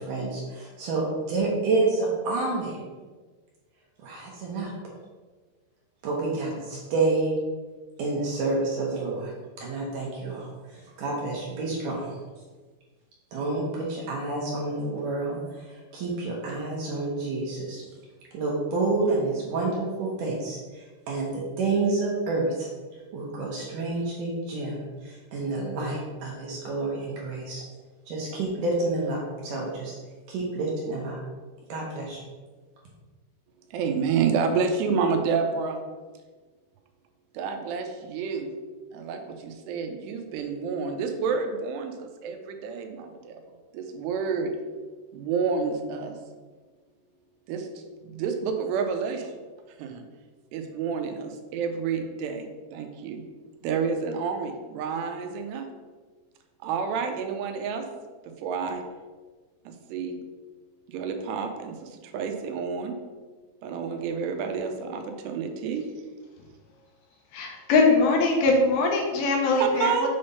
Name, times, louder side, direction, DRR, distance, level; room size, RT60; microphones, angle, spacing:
voice 1, 0.0-2.8 4.0-4.7 6.0-7.3 8.0-9.3 9.6-12.2 13.3-17.8 18.3-22.7 23.1-27.6 28.1-29.9 30.3-31.2 31.7-32.2, right 3 dB, 65° right, -3 dB, 2.3 m, -29 dB
voice 2, 33.7-35.8 37.3-38.5 38.9-43.4 43.7-44.5 45.1-46.2 47.5-47.7 48.0-49.3 49.8-50.0 50.5-53.2 53.6-55.7 56.6-57.9 58.3-58.8 59.7-60.2 60.9-62.9 63.6-65.9 69.6-70.1, right 5 dB, 85° right, 5 dB, 2.8 m, -29 dB
voice 3, 67.3-70.1, left 3 dB, 75° left, 0 dB, 2.5 m, -22 dB
7.8 x 3.5 x 5.5 m, 1.4 s
omnidirectional pair, 4.8 m